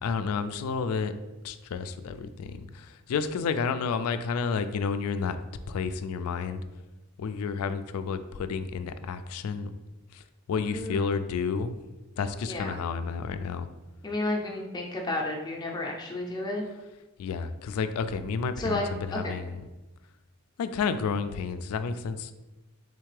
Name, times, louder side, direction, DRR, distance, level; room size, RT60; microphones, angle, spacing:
voice 1, 0.0-1.1 1.4-5.4 5.7-6.6 7.2-9.7 10.1-10.2 10.5-11.7 12.2-13.7 17.2-19.6 20.6-22.3, left 5 dB, 80° left, 11 dB, 0.3 m, -30 dB
voice 2, 10.6-11.0 12.4-12.8 14.0-16.6 18.6-18.8 19.1-19.3, left 2 dB, 20° left, 0 dB, 0.5 m, -32 dB
3.7 x 3.3 x 3.2 m, 1.1 s
head